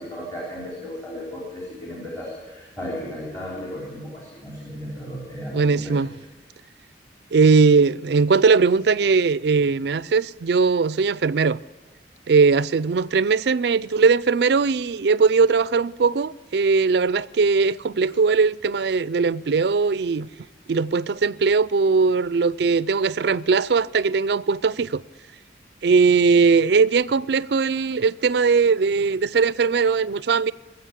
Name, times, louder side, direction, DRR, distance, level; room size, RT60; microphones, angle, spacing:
voice 1, 0.0-6.1, equal, 15° left, 3.9 m, -35 dB
voice 2, 5.5-6.1 7.3-11.6 12.3-20.3 20.7-25.0 25.8-30.5, right 4 dB, 65° right, 0.4 m, -19 dB
21.0 x 7.8 x 8.2 m
head